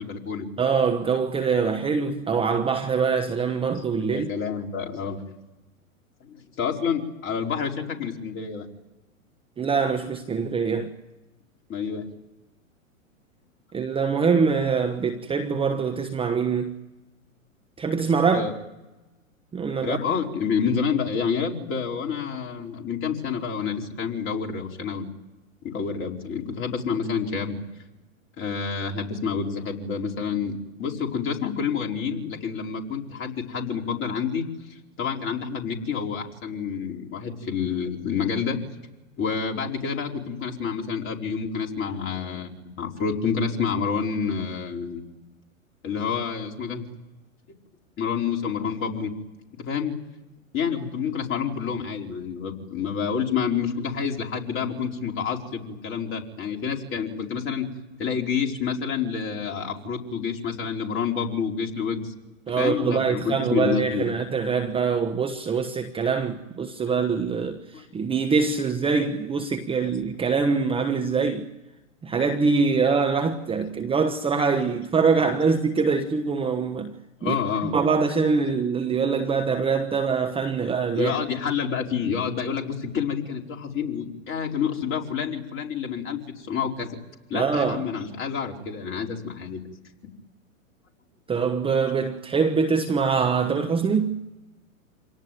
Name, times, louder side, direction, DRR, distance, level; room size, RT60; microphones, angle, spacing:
voice 1, 0.0-0.5 3.7-3.8 4.1-5.2 6.2-8.7 11.7-12.0 18.3-18.5 19.8-25.1 25.6-27.6 28.4-34.5 35.0-38.6 39.2-45.0 45.8-46.8 48.0-49.1 49.6-49.9 50.5-57.6 58.0-62.1 62.5-64.0 66.9-67.0 67.7-67.8 77.2-77.7 80.9-86.9 87.3-89.6, left 6 dB, 30° left, 4.8 m, -28 dB
voice 2, 0.6-4.3 9.6-10.9 13.7-16.7 17.8-18.5 19.5-20.0 62.5-71.5 72.0-76.9 77.2-77.4 77.7-81.1 87.3-87.8 91.3-94.2, right 5 dB, 15° right, 1.2 m, -24 dB
27.5 x 18.5 x 9.5 m
hypercardioid pair, 110°, 41 cm